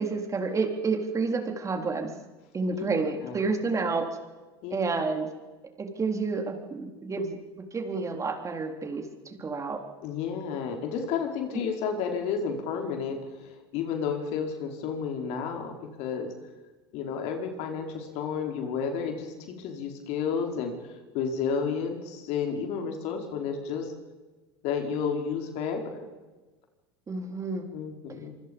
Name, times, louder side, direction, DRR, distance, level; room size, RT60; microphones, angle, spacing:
voice 1, 0.0-2.1 2.5-4.1 4.7-5.3 5.8-9.8 11.5-11.6 27.1-27.7 28.1-28.2, right 4 dB, 25° right, 4 dB, 4.0 m, -30 dB
voice 2, 10.0-16.3 16.9-20.7 21.1-23.9 24.6-26.1 27.7-28.3, left 6 dB, 55° left, 3 dB, 4.8 m, -31 dB
26.0 x 25.0 x 5.5 m, 1.2 s
hypercardioid pair, 85°, 13 cm